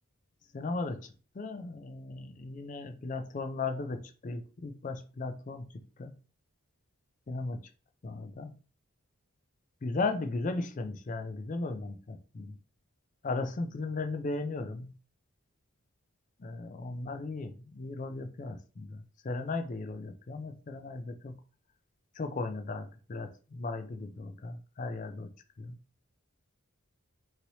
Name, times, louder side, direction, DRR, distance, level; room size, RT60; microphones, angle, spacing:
voice 1, 0.5-1.1 1.4-5.7 6.0-6.1 7.3-7.6 8.0-8.5 9.8-12.6 13.2-14.9 16.4-19.0 19.2-21.4 22.2-25.3 25.6-25.8, left 3 dB, 35° left, 7 dB, 0.3 m, -36 dB
3.1 x 2.9 x 2.7 m, 0.37 s
head